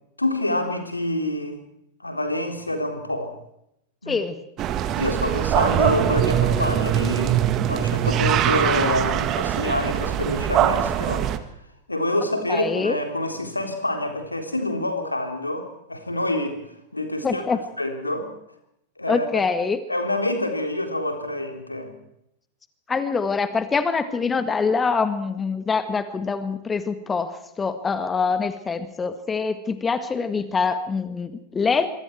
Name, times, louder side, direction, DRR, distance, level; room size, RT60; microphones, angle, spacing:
voice 1, 0.2-1.6 2.0-3.3 4.0-4.2 4.9-11.3 11.9-16.6 16.9-17.4 17.8-18.3 19.0-19.4 19.9-21.9, left 1 dB, 85° left, 5 dB, 3.7 m, -27 dB
voice 2, 4.1-4.4 12.5-13.0 17.2-17.6 19.1-19.8 22.9-31.9, left 5 dB, 15° left, 11 dB, 1.8 m, -24 dB
sound 1, 4.6-11.4, right 10 dB, 35° right, 1.8 m, -22 dB
26.5 x 22.5 x 4.7 m, 0.78 s
figure-of-eight pair, 90°, 0 cm